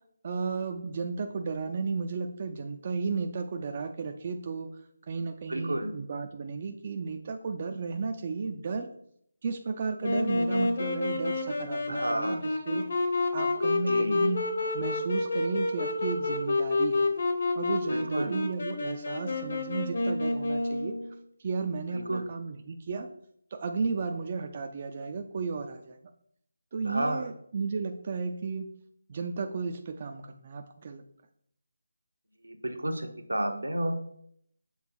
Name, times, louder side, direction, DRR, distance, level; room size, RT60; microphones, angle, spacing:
voice 1, 0.2-4.7 5.1-8.9 9.4-12.9 13.3-14.4 14.7-17.1 17.6-20.9 21.4-23.1 23.5-26.0 26.7-28.7 29.1-31.0, right 4 dB, 35° right, 6 dB, 0.4 m, -34 dB
voice 2, 5.5-5.9 11.9-12.4 13.9-14.2 17.9-18.4 21.9-22.3 26.8-27.3 32.4-34.0, right 1 dB, 80° right, 5 dB, 1.0 m, -31 dB
Wind instrument woodwind instrument, 10.0-21.1, left 2 dB, 50° left, 1.0 m, -29 dB
7.1 x 3.6 x 4.4 m, 0.68 s
figure-of-eight pair, 155°, 0 cm